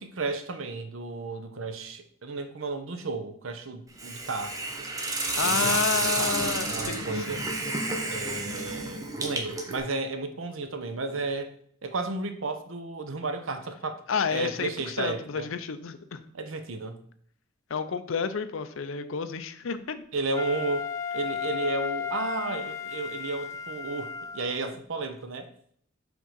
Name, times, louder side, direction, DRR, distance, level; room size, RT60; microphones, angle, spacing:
voice 1, 0.0-4.5 5.5-5.8 6.2-7.4 8.1-11.5 11.8-14.0 14.3-15.5 16.3-17.0 20.1-25.5, right 3 dB, 75° right, 8 dB, 0.8 m, -33 dB
Hiss, 4.0-9.8, right 2 dB, 15° right, 0.8 m, -30 dB
voice 2, 5.3-7.5 14.1-16.2 17.7-20.0, left 6 dB, 75° left, 11 dB, 0.6 m, -30 dB
Wind instrument woodwind instrument, 20.3-24.6, left 7 dB, 15° left, 0.3 m, -34 dB
6.0 x 3.7 x 5.5 m, 0.63 s
head